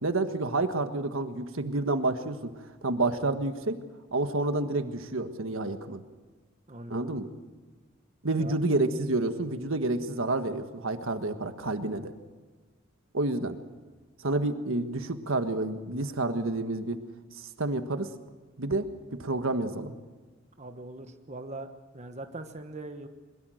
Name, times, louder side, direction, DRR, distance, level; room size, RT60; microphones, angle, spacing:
voice 1, 0.0-3.7 4.1-6.0 6.9-7.3 8.2-12.1 13.1-13.6 14.2-17.0 17.3-18.1 18.6-18.9 19.2-19.9, right 2 dB, 80° right, 8 dB, 1.5 m, -29 dB
voice 2, 6.7-7.1 8.4-8.6 20.6-21.7 21.9-23.1, right 2 dB, 35° right, 6 dB, 1.2 m, -41 dB
22.0 x 22.0 x 6.4 m, 1.3 s
head